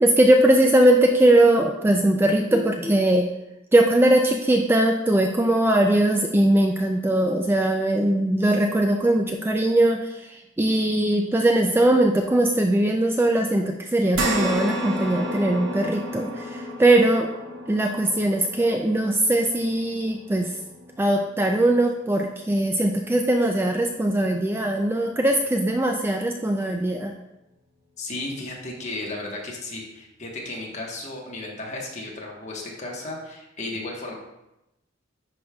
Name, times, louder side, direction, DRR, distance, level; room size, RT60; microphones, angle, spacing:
voice 1, 0.0-3.3 3.7-10.3 10.6-17.3 17.7-20.5 21.0-27.1, right 1 dB, 10° right, 3 dB, 0.3 m, -20 dB
sound 1, 14.1-22.8 23.2-23.3 24.8-24.9, right 1 dB, 85° right, 1.2 m, -32 dB
voice 2, 28.0-34.1, left 2 dB, 35° left, -1 dB, 1.2 m, -34 dB
10.5 x 5.1 x 2.3 m, 0.91 s
head